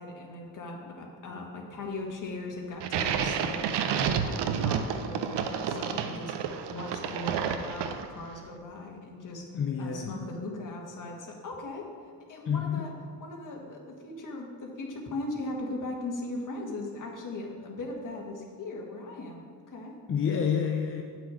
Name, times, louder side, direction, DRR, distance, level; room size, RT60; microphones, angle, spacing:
voice 1, 0.0-9.4 9.8-11.9 12.3-12.9 13.2-19.9, left 2 dB, 50° left, 0 dB, 1.6 m, -39 dB
sound 1, 2.8-8.3, right 7 dB, 85° right, 0.7 m, -30 dB
voice 2, 9.5-10.2 12.5-12.9 20.1-21.0, left 7 dB, 35° left, 2 dB, 0.5 m, -29 dB
8.8 x 6.0 x 4.8 m, 2.2 s
cardioid pair, 130°, 40 cm